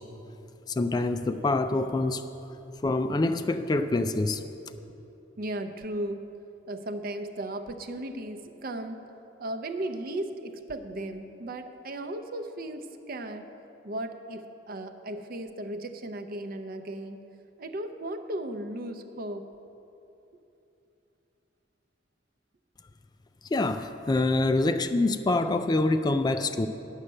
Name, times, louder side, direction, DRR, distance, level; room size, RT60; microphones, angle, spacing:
voice 1, 0.7-2.2 2.8-4.4 23.5-26.7, left 2 dB, 20° left, 9 dB, 0.3 m, -25 dB
voice 2, 5.4-6.2 6.7-9.1 9.4-13.5 13.8-17.2 17.6-19.5, right 1 dB, 50° right, 7 dB, 0.6 m, -36 dB
9.8 x 6.5 x 7.5 m, 2.9 s
head